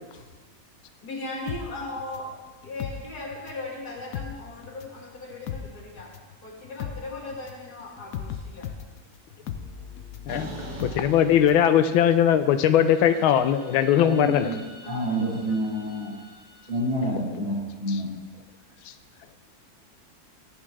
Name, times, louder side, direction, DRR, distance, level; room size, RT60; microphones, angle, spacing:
voice 1, 1.0-2.3 2.6-6.1 6.4-8.7 14.8-15.1, left 2 dB, 50° left, -1 dB, 2.3 m, -37 dB
sound 1, 1.5-3.7 4.0-11.7 12.0-12.1, left 8 dB, 70° left, 0.8 m, -37 dB
sound 2, 10.3-12.2 12.6-16.9, equal, 55° right, 2.5 m, -44 dB
voice 2, 10.8-14.5, left 10 dB, 85° left, 10 dB, 1.4 m, -20 dB
voice 3, 14.0-16.2 16.7-18.1, equal, 80° right, -10 dB, 3.4 m, -28 dB
14.5 x 10.0 x 3.2 m, 1.3 s
omnidirectional pair, 2.2 m